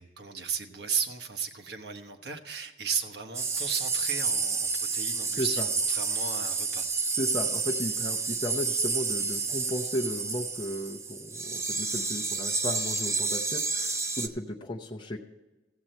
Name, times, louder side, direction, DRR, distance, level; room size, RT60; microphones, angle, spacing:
voice 1, 0.0-5.6 5.9-6.9, right 6 dB, 75° right, 5 dB, 1.1 m, -35 dB
sound 1, 3.3-14.3, right 4 dB, 15° right, 0.5 m, -30 dB
voice 2, 5.4-5.7 7.1-15.2, left 1 dB, 25° left, -1 dB, 0.7 m, -35 dB
14.5 x 7.7 x 4.3 m, 1.2 s
head